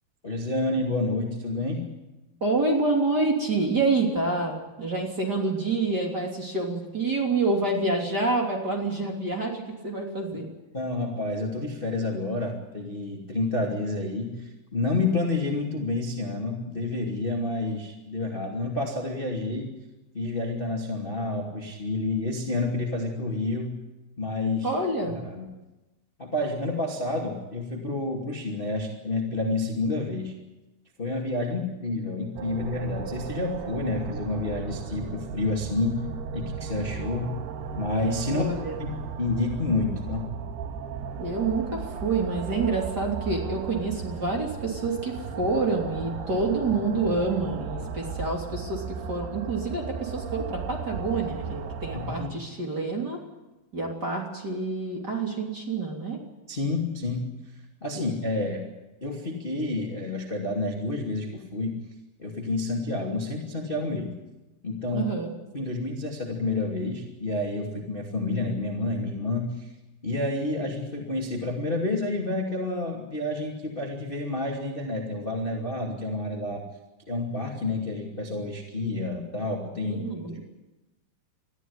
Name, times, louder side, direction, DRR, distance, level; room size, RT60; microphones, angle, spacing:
voice 1, 0.2-1.9 10.7-19.7 20.1-23.8 24.2-24.7 25.2-25.5 26.2-30.3 31.0-36.0 36.3-37.4 37.7-38.9 39.2-40.3 51.9-52.4 56.5-57.3 57.8-58.7 59.0-61.8 62.2-64.1 64.6-65.1 65.5-69.7 70.0-76.7 77.1-80.4, left 2 dB, 15° left, 0 dB, 1.9 m, -29 dB
voice 2, 2.4-10.5 24.6-25.2 38.3-38.8 41.2-53.2 53.7-56.2 57.9-58.0 64.9-65.3 79.9-80.4, right 3 dB, 25° right, 0 dB, 3.1 m, -27 dB
sound 1, 32.4-52.3, right 6 dB, 75° right, 3.4 m, -36 dB
22.0 x 14.5 x 9.7 m, 1.1 s
omnidirectional pair, 4.8 m